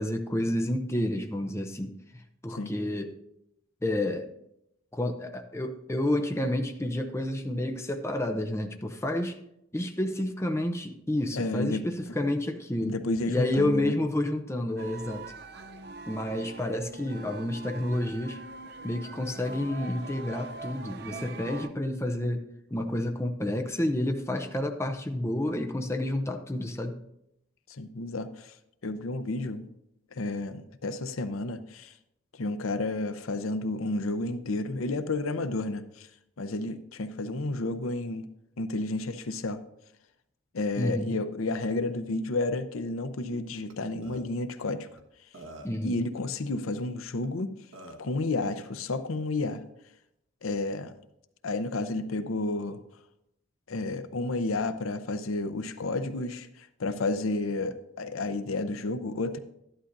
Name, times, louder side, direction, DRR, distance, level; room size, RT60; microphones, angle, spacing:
voice 1, 0.0-3.2 3.8-4.3 4.9-9.4 9.7-13.0 13.3-15.2 16.1-18.4 18.8-22.4 22.7-27.0 40.8-41.1 45.6-46.0, left 1 dB, 15° left, 5 dB, 0.6 m, -30 dB
voice 2, 11.3-11.8 12.8-13.9 27.7-28.5 28.8-29.7 30.1-31.9 32.3-36.1 36.4-38.3 38.6-39.6 40.5-44.9 45.8-47.5 48.0-49.6 50.4-50.9 51.4-52.8 53.7-59.4, left 2 dB, 85° left, 11 dB, 0.7 m, -31 dB
sound 1, 14.8-21.7, right 3 dB, 50° right, 0.6 m, -43 dB
Burping eructation, 43.7-43.8 44.0-44.2 45.0-45.1 45.3-45.9 47.2-47.3 47.7-48.1, right 1 dB, 75° right, 1.4 m, -45 dB
13.0 x 11.0 x 2.6 m, 0.82 s
head